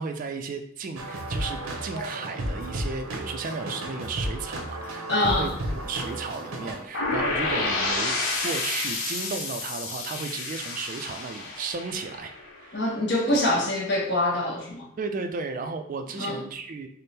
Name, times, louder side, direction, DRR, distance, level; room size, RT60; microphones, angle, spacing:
voice 1, 0.0-8.1 8.4-12.3 12.6-12.9 13.3-13.5 15.0-16.9, right 4 dB, 40° right, 6 dB, 0.3 m, -34 dB
sound 1, 1.0-6.8, right 1 dB, 90° right, 0.7 m, -33 dB
voice 2, 5.1-5.5 12.7-14.8 16.2-16.4, left 1 dB, 55° left, -1 dB, 0.9 m, -25 dB
sound 2, 6.9-12.8, left 3 dB, 90° left, 0.8 m, -30 dB
3.4 x 2.0 x 4.1 m, 0.66 s
head